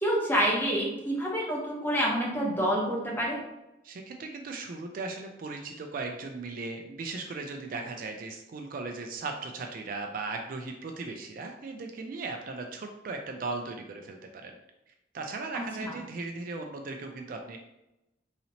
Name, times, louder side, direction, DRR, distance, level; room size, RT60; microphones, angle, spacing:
voice 1, 0.0-3.4 15.5-16.0, equal, 10° left, -4 dB, 0.9 m, -28 dB
voice 2, 3.8-14.6 14.9-17.6, right 3 dB, 50° right, 4 dB, 0.3 m, -37 dB
4.0 x 2.8 x 2.8 m, 0.92 s
head